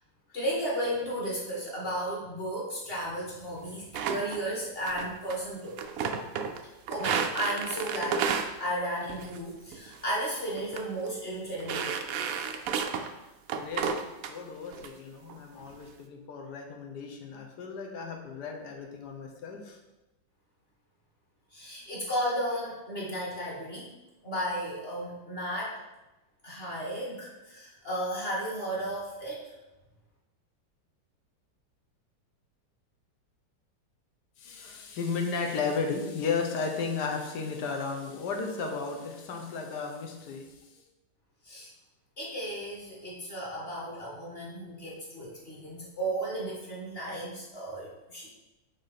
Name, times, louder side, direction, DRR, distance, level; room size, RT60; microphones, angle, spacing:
voice 1, 0.3-5.8 6.9-8.2 8.6-12.0 21.5-23.9 24.2-25.7 26.4-29.4 41.4-41.7 42.2-48.3, right 1 dB, 30° left, -5 dB, 1.9 m, -34 dB
sound 1, 3.9-4.4 4.9-5.4 5.7-6.6 6.9-8.5 9.1-9.4 9.7-10.0 10.6-10.8 11.1-11.2 11.6-13.1 13.5-14.3 14.7-14.9 15.3-15.8, right 6 dB, 75° right, 0.8 m, -32 dB
voice 2, 13.5-14.0 14.3-19.8 34.4-40.7, left 5 dB, 65° left, 3 dB, 1.4 m, -34 dB
5.4 x 3.6 x 5.6 m, 1.0 s
omnidirectional pair, 2.0 m